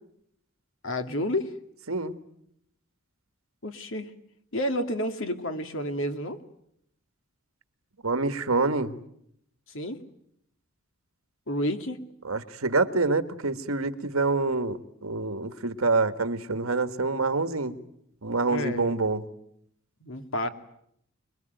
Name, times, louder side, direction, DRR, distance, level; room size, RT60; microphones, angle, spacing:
voice 1, 0.8-1.5 3.6-4.1 4.5-6.4 9.7-10.0 11.5-12.0 18.5-18.9 20.0-20.5, left 1 dB, 65° left, 7 dB, 2.4 m, -30 dB
voice 2, 8.0-9.0 12.2-17.7 18.2-19.3, right 3 dB, 80° right, 11 dB, 1.8 m, -26 dB
27.0 x 22.0 x 9.3 m, 0.74 s
head